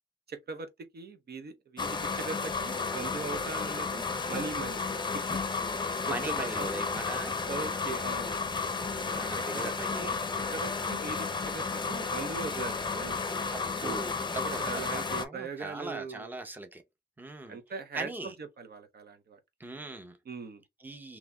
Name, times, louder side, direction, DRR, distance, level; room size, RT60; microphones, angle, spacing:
voice 1, 0.3-0.7 0.9-4.8 5.1-5.4 6.1-6.7 7.5-8.6 9.5-10.2 10.5-13.2 13.8-14.1 14.6-16.3 17.5-19.4 19.8-19.9 20.3-20.6, right 4 dB, 70° right, 0.8 m, -40 dB
sound 1, 1.8-15.3, left 4 dB, 25° left, 0.6 m, -33 dB
voice 2, 5.8-7.4 9.1-10.2 13.5-16.8 17.2-17.6 17.9-18.3 19.6-20.2 20.8-21.2, right 2 dB, 10° right, 0.7 m, -40 dB
3.9 x 2.9 x 2.3 m
wide cardioid pair, 135°, 17 cm